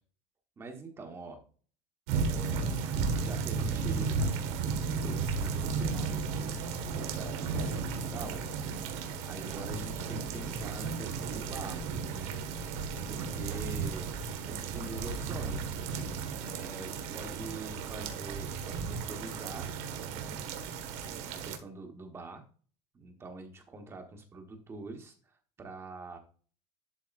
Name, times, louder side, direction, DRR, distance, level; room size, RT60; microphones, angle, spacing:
voice 1, 0.6-1.4 2.1-2.7 3.1-4.3 4.6-8.4 9.2-11.8 12.1-12.4 13.0-14.1 14.5-15.8 16.4-19.7 20.2-20.4 21.3-22.4 22.9-25.1 25.6-26.2, right 3 dB, 15° right, 4 dB, 1.2 m, -45 dB
sound 1, 2.1-21.6, right 5 dB, 80° right, 1.5 m, -34 dB
12.0 x 4.6 x 2.5 m, 0.40 s
cardioid pair, 180°, 15 cm